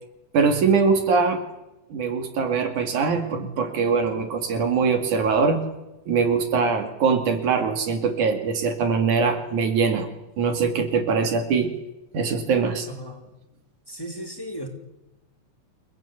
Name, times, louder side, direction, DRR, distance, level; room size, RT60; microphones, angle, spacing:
voice 1, 0.3-1.4 1.9-5.6 6.1-10.1 10.4-11.7 12.1-12.9, right 5 dB, 75° right, 6 dB, 3.8 m, -22 dB
voice 2, 12.9-13.3 13.9-14.7, equal, 5° left, 3 dB, 3.8 m, -35 dB
29.5 x 19.0 x 8.3 m, 1.0 s
omnidirectional pair, 3.5 m